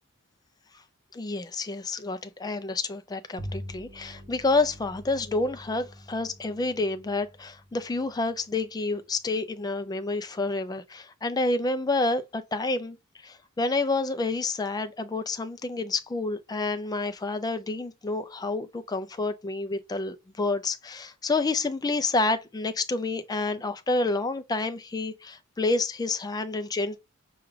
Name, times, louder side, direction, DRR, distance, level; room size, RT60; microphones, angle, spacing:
voice 1, 1.1-13.0 13.2-27.0, left 3 dB, 20° left, 0.4 m, -29 dB
Bowed string instrument, 3.4-9.0, equal, 65° right, 1.0 m, -45 dB
5.9 x 2.3 x 3.1 m
head